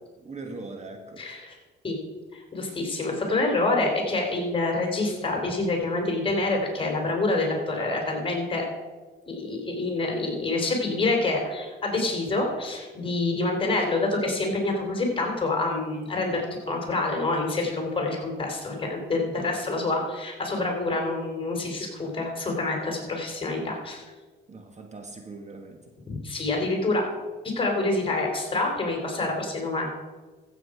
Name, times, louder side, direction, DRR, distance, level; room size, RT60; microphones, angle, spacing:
voice 1, 0.2-1.2 24.5-25.8, right 3 dB, 35° right, 4 dB, 1.6 m, -40 dB
voice 2, 1.2-1.6 1.8-2.0 2.3-8.7 9.3-24.0 26.0-27.0 27.6-29.9, left 2 dB, 25° left, 1 dB, 3.6 m, -27 dB
14.5 x 7.7 x 4.9 m, 1.3 s
cardioid pair, 90°, 20 cm